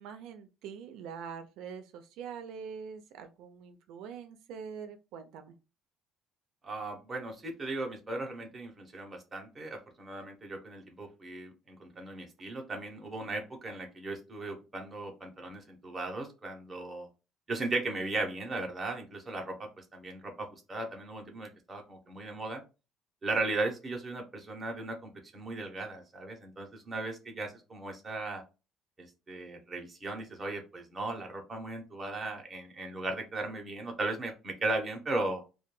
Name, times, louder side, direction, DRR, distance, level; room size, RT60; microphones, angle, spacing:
voice 1, 0.0-5.5, right 6 dB, 80° right, 7 dB, 0.4 m, -44 dB
voice 2, 6.6-17.1 17.5-22.6 23.2-28.4 29.0-35.4, right 2 dB, 15° right, 2 dB, 0.7 m, -37 dB
2.2 x 2.1 x 3.0 m, 0.29 s
cardioid pair, 155°, 0 cm